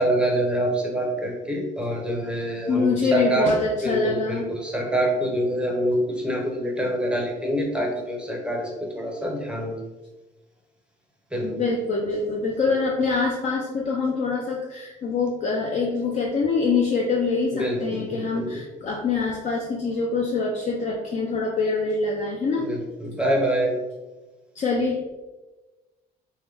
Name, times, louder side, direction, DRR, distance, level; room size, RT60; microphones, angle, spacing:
voice 1, 0.0-3.5 3.8-9.8 11.3-11.5 17.5-18.6 22.6-23.8, right 1 dB, 5° right, 0 dB, 0.6 m, -26 dB
voice 2, 2.7-4.5 11.4-22.7 24.5-25.0, left 4 dB, 45° left, 0 dB, 0.5 m, -25 dB
3.3 x 2.1 x 3.3 m, 1.1 s
cardioid pair, 110°, 17 cm